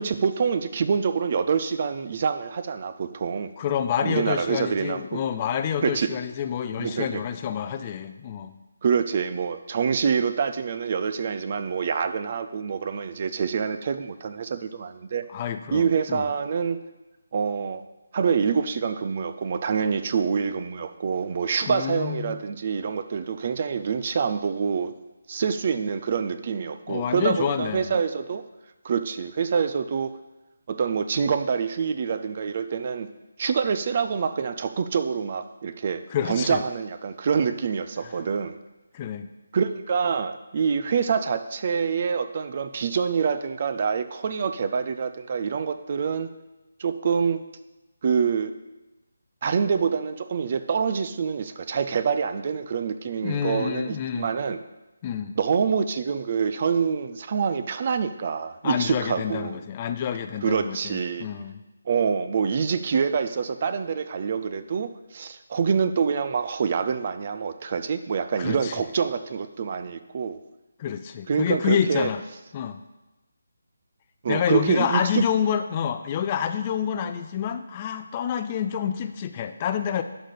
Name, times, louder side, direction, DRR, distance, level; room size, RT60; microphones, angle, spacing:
voice 1, 0.0-3.5 4.0-5.2 5.8-6.1 6.8-7.2 8.8-15.2 15.7-16.8 17.3-17.8 18.1-24.9 25.3-28.4 28.8-30.2 30.7-33.1 33.4-38.6 39.5-46.3 46.8-47.4 48.0-48.5 49.4-54.6 55.4-59.6 60.4-61.3 61.9-70.4 71.3-72.1 74.2-75.2, right 6 dB, 40° right, 10 dB, 0.6 m, -26 dB
voice 2, 3.6-8.6 15.3-16.3 21.7-22.4 26.9-27.9 36.1-36.6 38.0-38.1 38.9-39.3 53.2-54.3 55.0-55.4 58.6-61.6 68.4-68.7 70.8-72.2 72.5-72.8 74.3-80.0, left 8 dB, 25° left, 9 dB, 0.5 m, -28 dB
11.5 x 4.2 x 6.5 m, 1.0 s
figure-of-eight pair, 160°, 0 cm